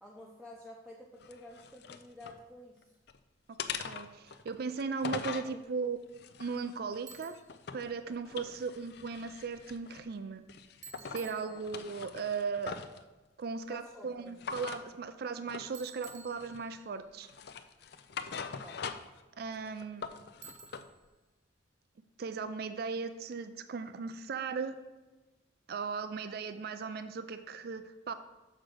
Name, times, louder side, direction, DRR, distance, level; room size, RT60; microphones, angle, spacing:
voice 1, 0.0-3.0 5.1-5.6 8.4-8.5 11.2-11.6 13.7-14.4 18.6-18.9, left 1 dB, ahead, -4 dB, 0.7 m, -51 dB
sound 1, 1.2-2.4 2.8-3.2 3.6-5.5 6.1-7.9 8.2-10.1 10.5-11.3 11.6-13.0 14.4-14.8 15.5-15.7 16.1-16.8 17.2-19.2 19.5-20.9, left 6 dB, 60° left, 0.5 m, -42 dB
voice 2, 3.8-6.0 6.4-7.4 7.7-10.4 11.1-12.8 13.4-17.3 19.4-20.1 22.2-24.8 25.7-28.1, right 5 dB, 55° right, 10 dB, 0.4 m, -37 dB
Bicycle, 7.1-7.6 10.8-12.0 15.7-17.0 20.4-21.1, right 6 dB, 75° right, 0.9 m, -52 dB
6.5 x 4.9 x 6.1 m, 1.2 s
head